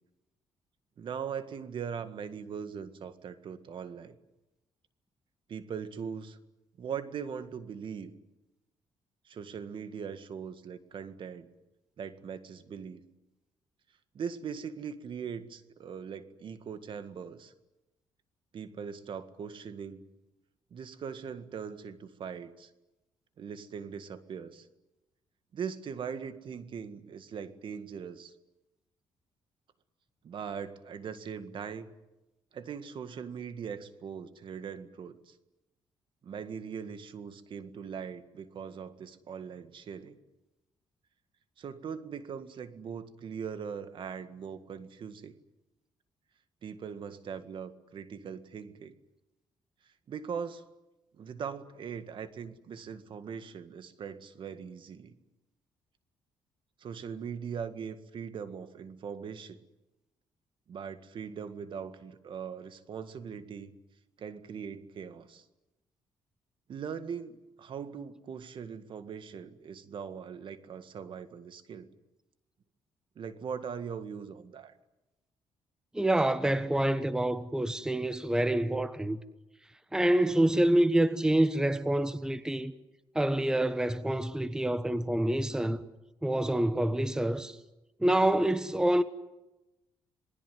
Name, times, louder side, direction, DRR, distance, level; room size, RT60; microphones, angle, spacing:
voice 1, 1.0-4.2 5.5-6.4 6.8-8.1 9.3-11.5 12.0-13.0 14.1-17.5 18.5-20.0 20.7-22.7 23.4-24.7 25.5-28.3 30.2-31.9 32.5-35.4 36.2-40.2 41.6-45.3 46.6-48.9 50.1-50.6 51.1-55.1 56.8-59.6 60.7-63.8 64.2-65.5 66.7-71.9 73.2-74.7, right 7 dB, 55° right, 1.9 m, -40 dB
voice 2, 75.9-79.2 79.9-82.7 83.1-85.8 86.2-87.6 88.0-89.0, right 1 dB, 5° right, 1.1 m, -27 dB
27.5 x 20.0 x 9.4 m
cardioid pair, 105°, 10 cm